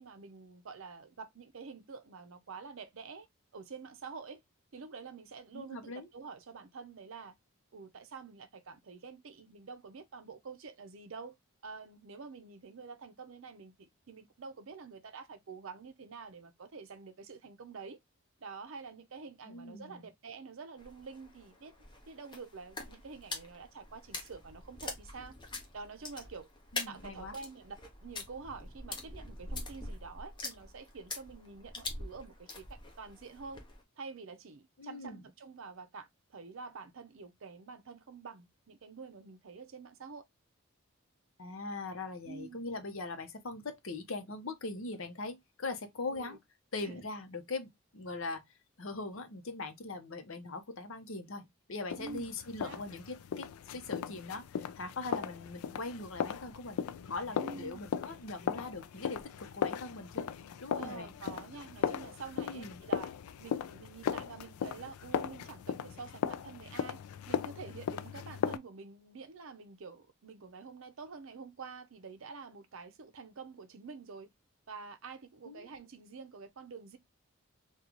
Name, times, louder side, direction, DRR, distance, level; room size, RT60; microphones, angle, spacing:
voice 1, 0.0-3.3 3.5-4.4 4.7-7.3 7.7-11.3 11.6-18.0 18.4-21.7 22.0-25.3 25.7-26.5 26.9-33.6 34.0-40.2 42.2-42.7 46.1-46.4 46.8-47.0 52.0-52.3 52.6-52.8 57.4-57.9 60.7-63.1 63.4-67.0 67.3-74.3 74.7-77.0, right 4 dB, 65° right, 0.6 m, -48 dB
voice 2, 5.5-6.1 19.5-20.0 26.7-27.3 34.8-35.2 41.4-46.4 46.7-48.4 48.8-54.5 54.8-56.8 57.0-60.3 60.6-61.1 62.4-62.8 75.5-75.7, left 3 dB, 65° left, 0.8 m, -41 dB
sound 1, 20.8-33.8, left 3 dB, 20° left, 0.7 m, -44 dB
sound 2, 51.9-68.6, left 7 dB, 85° left, 0.3 m, -37 dB
3.8 x 2.3 x 2.9 m
head